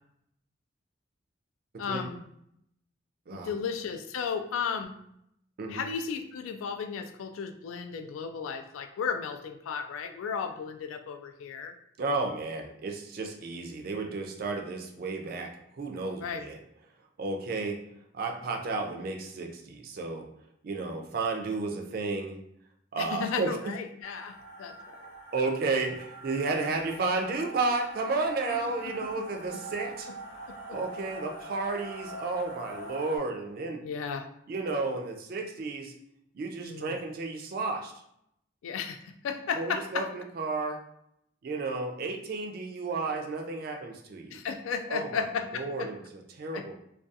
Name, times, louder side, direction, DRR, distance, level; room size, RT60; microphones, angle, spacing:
voice 1, 1.8-2.2 3.4-5.0 5.7-11.7 16.2-16.4 23.0-25.1 27.0-27.1 28.5-29.2 29.5-29.6 30.7-30.8 33.8-34.3 36.6-37.0 38.6-40.1 44.3-45.9 46.5-46.8, left 6 dB, 90° left, 7 dB, 0.3 m, -34 dB
voice 2, 12.0-16.6 17.2-17.8 18.1-20.3 20.6-22.4 22.9-23.5 25.3-30.1 30.7-33.8 34.5-35.9 36.3-37.9 39.6-40.8 41.4-44.4 44.9-45.2 45.5-46.8, right 3 dB, 50° right, 3 dB, 0.3 m, -32 dB
sound 1, 24.0-33.2, right 1 dB, 55° left, 0.8 m, -44 dB
2.3 x 2.3 x 2.6 m, 0.75 s
head